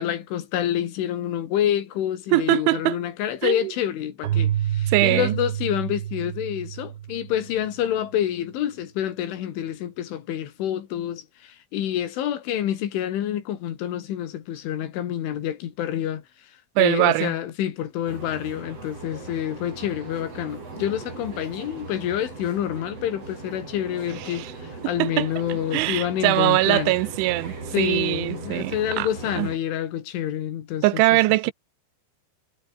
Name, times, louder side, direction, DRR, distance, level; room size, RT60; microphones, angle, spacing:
voice 1, 0.0-16.2 16.8-26.9 27.7-31.2, left 11 dB, 80° left, 4.8 m, -28 dB
voice 2, 2.3-3.0 3.4-3.7 4.9-5.4 16.8-17.4 24.2-24.5 24.8-25.3 25.7-29.1 29.4-29.5 30.8-31.5, right 19 dB, 90° right, 3.2 m, -22 dB
Keyboard (musical), 4.2-7.8, right 11 dB, 70° right, 4.4 m, -28 dB
sound 1, 18.1-29.6, right 3 dB, 30° right, 6.9 m, -39 dB
omnidirectional pair, 5.5 m